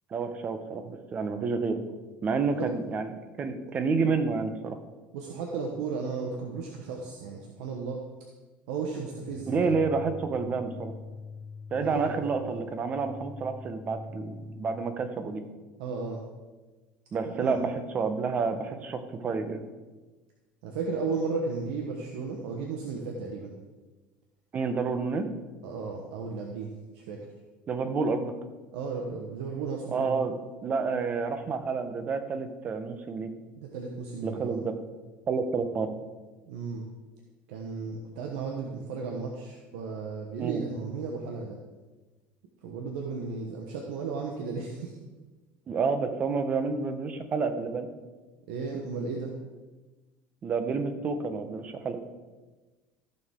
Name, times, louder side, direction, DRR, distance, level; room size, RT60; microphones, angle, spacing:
voice 1, 0.1-1.8 2.2-3.1 3.4-4.8 9.5-10.9 11.7-15.4 17.1-19.6 24.5-25.3 27.7-28.3 29.9-30.3 30.6-33.3 34.2-34.8 35.3-35.9 40.4-40.6 45.7-47.9 50.4-52.0, right 4 dB, 35° right, 8 dB, 1.0 m, -29 dB
voice 2, 5.1-8.0 8.7-9.7 11.7-12.6 15.8-16.2 17.2-17.6 20.6-23.5 25.6-27.3 28.7-30.3 33.6-34.6 36.4-36.9 37.5-41.6 42.6-44.9 48.5-49.3, right 4 dB, 85° right, 1 dB, 1.2 m, -35 dB
sound 1, 9.3-14.9, left 3 dB, 50° left, 1.3 m, -43 dB
14.5 x 6.8 x 3.7 m, 1.2 s
cardioid pair, 125°, 5 cm